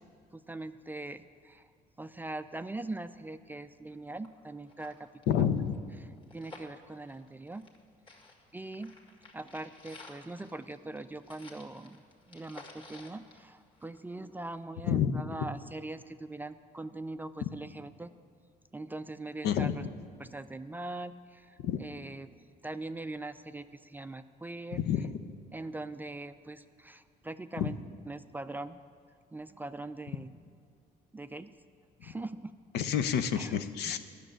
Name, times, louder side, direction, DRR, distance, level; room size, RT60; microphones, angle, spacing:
voice 1, 0.3-1.7 2.0-5.1 5.4-5.5 6.3-7.7 8.5-8.9 9.3-18.1 18.7-19.8 20.2-22.3 22.6-24.8 25.5-27.8 28.1-28.8 29.3-30.3 31.1-31.5 32.0-32.5 33.4-33.5 33.8-34.0, right 2 dB, 10° right, 11 dB, 0.3 m, -41 dB
sound 1, 3.9-4.0 4.2-4.3 4.6-7.8 8.1-14.2 14.5-14.6, left 3 dB, 30° left, 1.8 m, -53 dB
voice 2, 5.3-5.8 14.9-15.5 19.4-19.8 21.6-21.8 24.7-25.2 27.6-27.7 32.7-34.0, left 8 dB, 75° left, 11 dB, 0.7 m, -29 dB
11.0 x 6.5 x 8.9 m, 2.2 s
cardioid pair, 110°, 17 cm